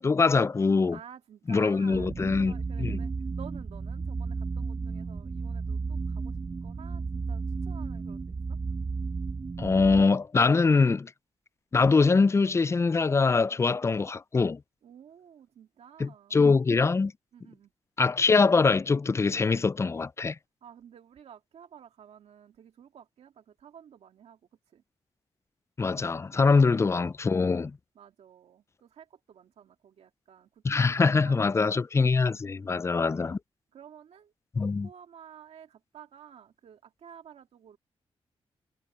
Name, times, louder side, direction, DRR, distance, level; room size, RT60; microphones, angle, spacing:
voice 1, 0.0-1.0 1.5-2.5 2.8-3.0 9.6-11.1 11.7-14.6 16.0-17.1 18.0-20.4 25.8-27.8 30.6-33.4 34.6-34.9, left 4 dB, 25° left, 0.4 m, -23 dB
voice 2, 0.9-8.6 14.8-16.4 17.3-17.7 20.6-24.4 24.7-24.8 27.9-31.8 32.5-32.8 33.7-34.3 34.6-37.8, right 8 dB, 80° right, 2.2 m, -52 dB
sound 1, 1.9-10.0, right 4 dB, 35° right, 1.0 m, -33 dB
cardioid pair, 80°, 11 cm